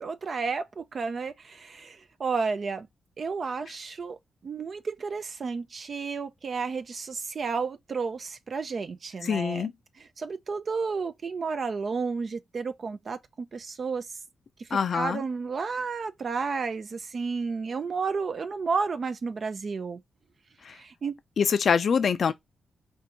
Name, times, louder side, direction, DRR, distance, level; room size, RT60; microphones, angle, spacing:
voice 1, 0.0-2.9 3.2-4.2 4.4-9.7 10.0-13.2 13.5-14.1 14.7-20.0 20.7-21.1, right 5 dB, 55° right, 0.4 m, -32 dB
voice 2, 9.2-9.7 14.7-15.2 20.7-20.8 21.4-22.3, left 6 dB, 65° left, 0.4 m, -24 dB
4.4 x 2.5 x 2.7 m
supercardioid pair, 50°, 0 cm